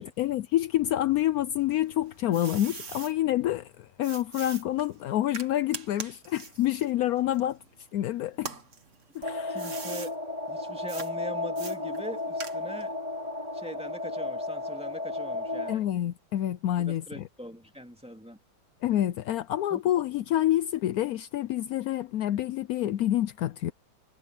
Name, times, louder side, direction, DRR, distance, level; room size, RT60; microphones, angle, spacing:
voice 1, 0.0-7.6 7.9-8.5 9.1-9.6 15.7-17.2 18.8-23.7, left 13 dB, 85° left, 0.8 m, -28 dB
sound 1, 1.7-3.1 4.0-7.9 8.3-10.1 10.9-11.1 11.6-12.9, right 5 dB, 40° right, 1.8 m, -41 dB
sound 2, 9.2-15.7, left 2 dB, 20° right, 5.0 m, -33 dB
voice 2, 9.5-10.2 10.5-13.0 13.5-15.8 16.9-18.4 19.7-19.8, equal, 5° right, 2.2 m, -42 dB
omnidirectional pair, 2.2 m